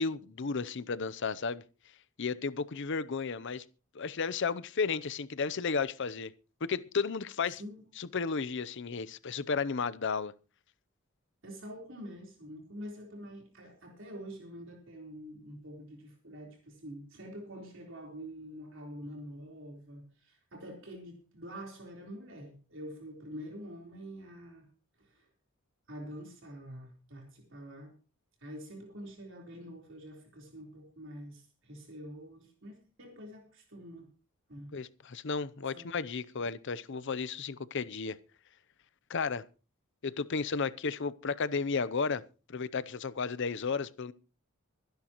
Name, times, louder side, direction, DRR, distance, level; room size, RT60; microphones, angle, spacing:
voice 1, 0.0-1.6 2.2-3.6 3.9-6.3 6.7-7.6 8.0-10.3 34.7-38.2 39.1-39.4 40.0-42.2 42.5-44.1, left 5 dB, 55° left, 0.7 m, -33 dB
voice 2, 11.4-24.7 25.0-25.3 25.9-27.9 28.4-34.1 34.5-34.8 35.7-35.9, equal, 60° right, 3.9 m, -46 dB
24.5 x 10.5 x 3.0 m
head